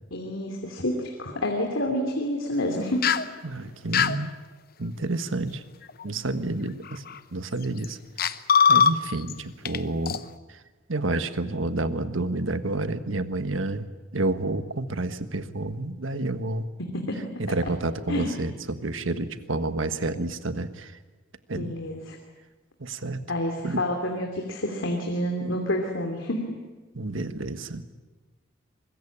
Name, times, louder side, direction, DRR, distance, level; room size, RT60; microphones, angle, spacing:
voice 1, 0.1-3.0 16.8-17.2 18.1-18.3 21.6-22.2 23.3-26.4, left 1 dB, 85° left, 2 dB, 2.9 m, -28 dB
sound 1, 3.0-3.3 3.9-4.2 5.9-6.0 6.9-7.2 7.8-7.9 8.2-9.3 9.6-9.8 10.1-10.2, left 6 dB, 50° left, 0.9 m, -20 dB
voice 2, 3.4-4.3 4.8-5.6 6.0-7.0 7.3-8.0 8.7-10.2 10.9-13.9 14.1-16.7 17.4-20.9 21.5-21.8 22.8-23.2 23.6-23.8 27.0-27.8, right 2 dB, 85° right, 10 dB, 1.4 m, -29 dB
25.0 x 21.5 x 8.6 m, 1.3 s
head